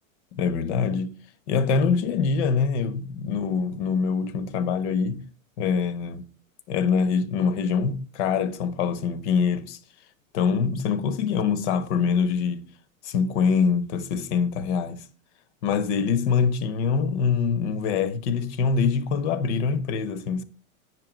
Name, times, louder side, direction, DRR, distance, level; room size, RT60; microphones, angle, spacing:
voice 1, 0.3-1.2 1.5-5.2 5.6-6.3 6.7-9.8 10.3-12.6 13.0-15.0 15.6-20.4, left 6 dB, 55° left, 1.0 m, -24 dB
8.5 x 6.2 x 5.0 m
supercardioid pair, 145°, 42 cm